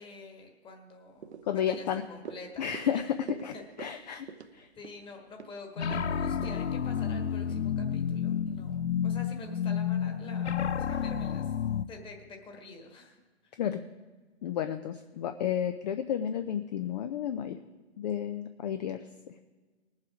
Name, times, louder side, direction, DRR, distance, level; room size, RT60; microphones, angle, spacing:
voice 1, 0.0-2.6 2.9-3.1 3.5-4.1 4.8-11.5 11.9-13.6, left 3 dB, 15° left, 3 dB, 1.5 m, -47 dB
sound 1, 1.2-7.7 8.0-8.1, right 6 dB, 80° right, 1.0 m, -47 dB
voice 2, 1.5-2.0 2.6-3.1 3.4-4.3 4.5-4.7 13.6-13.8 14.4-17.6 18.0-19.3, left 9 dB, 40° left, 9 dB, 0.6 m, -32 dB
sound 2, 5.8-11.9, left 8 dB, 90° left, 0.6 m, -30 dB
19.5 x 7.4 x 4.9 m, 1.3 s
hypercardioid pair, 130°, 33 cm